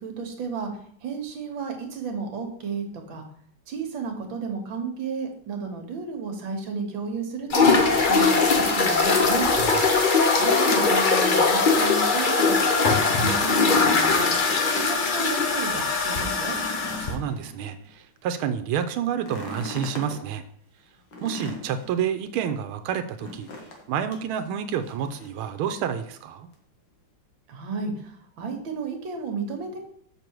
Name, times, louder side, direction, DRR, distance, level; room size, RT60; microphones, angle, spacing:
voice 1, 0.0-0.7 1.0-3.2 3.7-7.7 8.0-9.5 10.4-14.3 14.7-16.6 27.5-29.9, right 4 dB, 65° right, 4 dB, 2.0 m, -33 dB
sound 1, 7.5-17.1, left 4 dB, 75° left, 0.4 m, -21 dB
voice 2, 9.5-10.0 16.9-20.4 21.2-23.5 23.9-26.5, right 8 dB, 90° right, 9 dB, 1.5 m, -29 dB
sound 2, 13.0-15.1 15.5-15.6 16.0-17.9 19.1-20.2 21.1-22.0 23.2-23.8 24.1-24.3 24.8-25.4 26.5-26.6, left 2 dB, 60° left, 2.1 m, -38 dB
6.8 x 6.5 x 4.6 m, 0.62 s
omnidirectional pair, 2.3 m